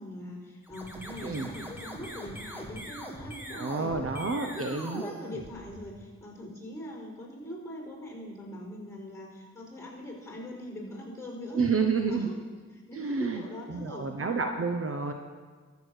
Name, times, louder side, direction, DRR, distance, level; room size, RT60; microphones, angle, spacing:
voice 1, 0.0-4.1 4.4-11.7 12.1-12.3 12.7-14.1, left 1 dB, 10° left, 0 dB, 4.7 m, -42 dB
sound 1, 0.6-6.1, equal, 5° right, 2.0 m, -43 dB
voice 2, 3.5-5.0 11.5-12.3 12.9-13.4 13.7-15.1, right 4 dB, 45° right, 5 dB, 1.0 m, -29 dB
13.5 x 7.1 x 6.6 m, 1.5 s
cardioid pair, 60°, 31 cm